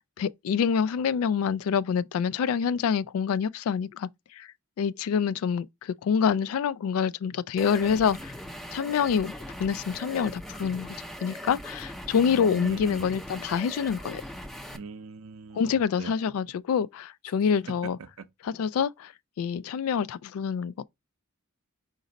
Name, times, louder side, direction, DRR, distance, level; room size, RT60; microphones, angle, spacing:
voice 1, 0.2-4.5 4.8-8.3 8.7-9.3 9.6-14.2 15.5-18.0 18.4-19.1 19.4-20.8, left 7 dB, 80° left, 0.3 m, -26 dB
sound 1, 7.6-14.8, equal, ahead, 0.4 m, -40 dB
voice 2, 12.2-13.1 14.7-16.1 17.8-18.3, right 4 dB, 75° right, 0.5 m, -42 dB
5.1 x 2.6 x 3.9 m
head